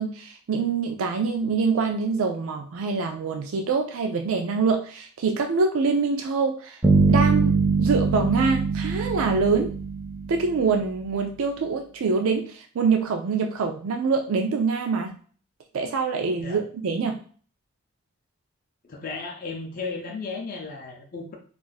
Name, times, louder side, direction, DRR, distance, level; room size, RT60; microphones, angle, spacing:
voice 1, 0.0-6.8 7.1-9.7 10.3-15.2 15.7-17.2, right 4 dB, 75° right, 4 dB, 0.4 m, -25 dB
sound 1, 6.8-10.8, right 4 dB, 10° right, 0.5 m, -22 dB
voice 2, 18.8-21.3, left 4 dB, 40° left, 0 dB, 0.5 m, -34 dB
2.5 x 2.4 x 3.9 m, 0.43 s
head